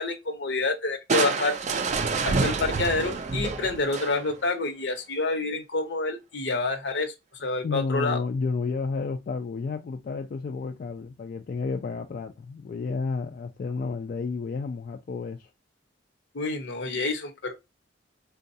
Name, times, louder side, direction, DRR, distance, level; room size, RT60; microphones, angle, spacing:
voice 1, 0.0-1.6 2.2-7.1 7.4-8.2 16.3-17.5, left 3 dB, 75° left, 0.9 m, -28 dB
Crushing, 1.1-4.5, right 4 dB, 40° right, 0.4 m, -27 dB
voice 2, 7.6-15.5, left 4 dB, 50° left, 0.3 m, -31 dB
3.8 x 2.3 x 2.6 m
head